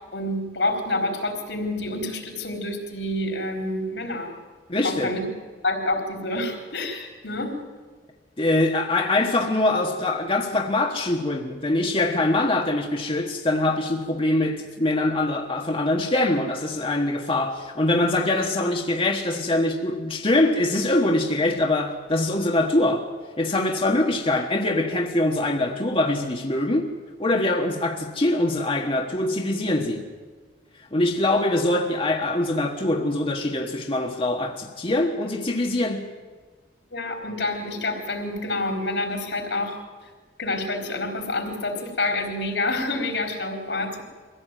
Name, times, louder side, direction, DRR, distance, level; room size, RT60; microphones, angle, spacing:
voice 1, 0.1-4.4 4.8-5.2 5.6-7.5 36.9-39.7 40.4-44.0, left 2 dB, 85° left, 4.3 m, -28 dB
voice 2, 4.7-5.2 8.4-23.1 23.4-26.9 27.2-30.1 30.9-36.1, left 2 dB, 35° left, 1.4 m, -23 dB
23.5 x 16.0 x 9.1 m
head